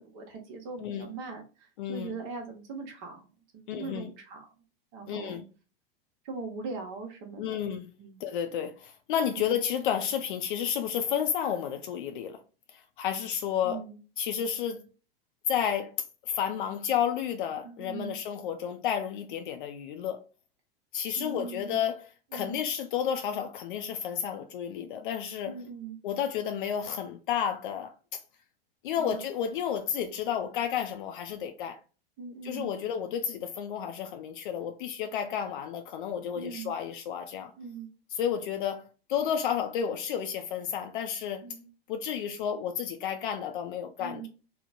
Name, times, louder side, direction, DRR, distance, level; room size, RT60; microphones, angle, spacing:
voice 1, 0.0-3.3 3.5-4.5 4.9-5.4 6.2-7.6 8.0-8.2 9.3-9.5 13.6-14.0 17.6-18.2 21.1-21.8 22.3-22.6 25.4-26.0 28.9-29.2 32.2-32.7 36.3-36.7 37.6-37.9 41.4-41.7 44.0-44.3, right 4 dB, 50° right, 0.9 m, -41 dB
voice 2, 1.8-2.1 3.7-4.1 5.1-5.4 7.4-7.9 8.2-12.4 13.0-13.8 14.2-14.8 15.5-16.0 16.3-20.2 20.9-22.0 22.3-25.5 26.0-27.9 28.8-31.8 32.4-37.5 38.2-41.4 41.9-44.3, left 8 dB, 60° left, 0.5 m, -31 dB
3.0 x 2.0 x 2.4 m
figure-of-eight pair, 90°, 29 cm